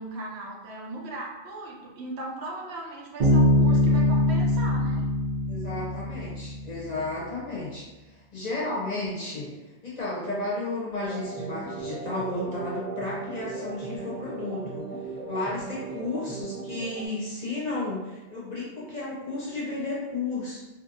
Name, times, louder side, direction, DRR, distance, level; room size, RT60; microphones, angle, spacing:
voice 1, 0.0-5.1 15.8-16.0, right 2 dB, 75° right, -1 dB, 0.9 m, -38 dB
Bass guitar, 3.2-6.8, left 1 dB, 40° right, 0.9 m, -22 dB
voice 2, 5.5-7.8 8.1-9.5 9.8-14.9 15.3-20.6, left 2 dB, 45° left, -6 dB, 0.7 m, -33 dB
sound 1, 11.0-17.1, right 4 dB, 10° right, 0.7 m, -37 dB
2.6 x 2.6 x 2.6 m, 1.1 s
omnidirectional pair, 1.1 m